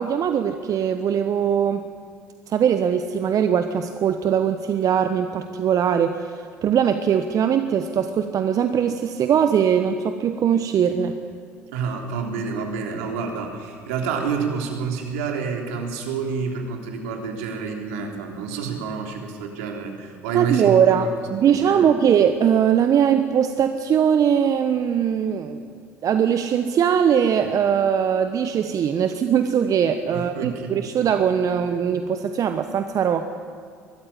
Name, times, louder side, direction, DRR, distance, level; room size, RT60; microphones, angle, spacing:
voice 1, 0.0-1.9 2.5-11.2 20.3-25.6 26.0-33.3, right 8 dB, 50° right, 9 dB, 1.1 m, -21 dB
voice 2, 11.7-21.1 21.4-21.9 30.1-30.9, right 5 dB, 75° right, 2 dB, 3.5 m, -29 dB
22.0 x 14.0 x 9.9 m, 2.2 s
hypercardioid pair, 60°, 8 cm